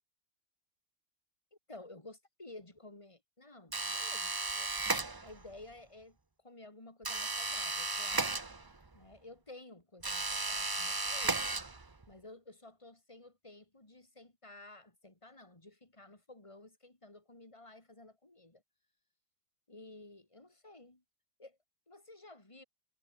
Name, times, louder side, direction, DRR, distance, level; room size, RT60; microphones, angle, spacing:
voice 1, 1.7-4.7 5.2-6.2 6.4-8.4 8.9-11.4 12.1-18.6 19.7-21.0 21.4-21.6 21.9-22.6, left 2 dB, 15° left, 3.2 m, -53 dB
sound 1, 3.7-5.5 7.0-8.9 10.0-12.1, right 3 dB, 30° right, 0.4 m, -35 dB
omnidirectional pair, 2.1 m